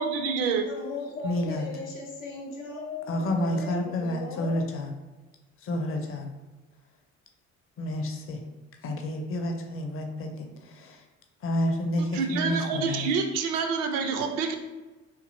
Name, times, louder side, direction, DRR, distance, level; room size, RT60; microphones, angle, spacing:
voice 1, 0.0-0.6 12.0-14.5, right 5 dB, 55° right, 5 dB, 0.5 m, -27 dB
voice 2, 0.7-4.6, left 3 dB, 80° left, -1 dB, 0.6 m, -37 dB
voice 3, 1.2-1.7 3.1-4.9 5.6-6.3 7.8-8.4 8.8-11.0 11.4-13.1, left 1 dB, 35° left, 4 dB, 0.5 m, -30 dB
3.0 x 2.7 x 2.5 m, 1.2 s
figure-of-eight pair, 50°, 39 cm